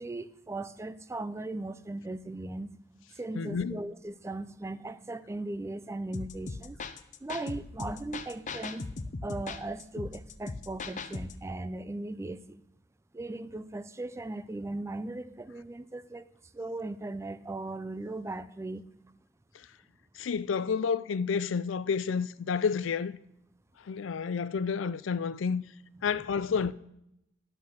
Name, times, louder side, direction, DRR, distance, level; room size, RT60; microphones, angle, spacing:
voice 1, 0.0-2.8 3.1-6.8 7.2-8.8 9.2-12.6 13.1-16.3 16.5-18.9, right 2 dB, 15° right, 0.4 m, -38 dB
voice 2, 3.4-3.8 20.2-23.2 23.9-25.6 26.0-26.7, left 6 dB, 85° left, 0.4 m, -30 dB
sound 1, 6.1-11.5, left 3 dB, 40° left, 0.6 m, -39 dB
11.0 x 5.8 x 6.3 m
head